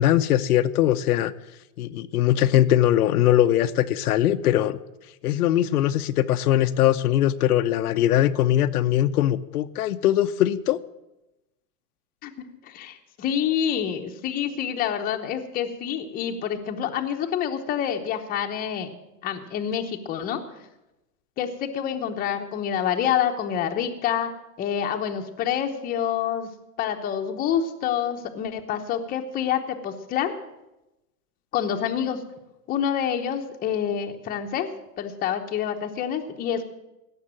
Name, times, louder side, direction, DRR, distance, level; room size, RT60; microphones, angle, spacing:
voice 1, 0.0-1.3 1.8-4.8 5.2-10.8, left 12 dB, 80° left, 10 dB, 0.8 m, -21 dB
voice 2, 12.2-18.9 19.2-20.4 21.4-24.3 24.6-26.5 26.8-30.3 31.5-32.2 32.7-34.7 35.0-36.6, left 9 dB, 20° left, 4 dB, 0.9 m, -27 dB
16.5 x 6.7 x 8.9 m, 0.95 s
supercardioid pair, 150°, 45 cm